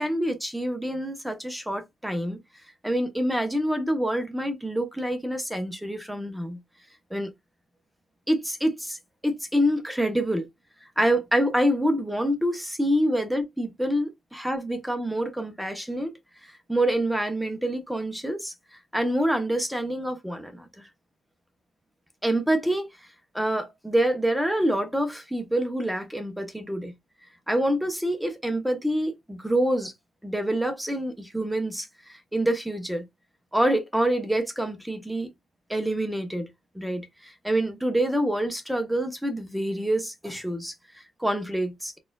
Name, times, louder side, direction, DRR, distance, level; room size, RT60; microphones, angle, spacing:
voice 1, 0.0-2.4 2.8-6.6 7.1-7.3 8.3-10.5 11.0-16.1 16.4-18.5 18.9-20.7 22.2-22.9 23.3-26.9 27.5-29.9 30.2-33.0 33.5-35.3 35.7-36.5 36.7-42.0, right 1 dB, 5° right, 0.7 m, -26 dB
4.1 x 2.4 x 2.3 m
cardioid pair, 110°, 0 cm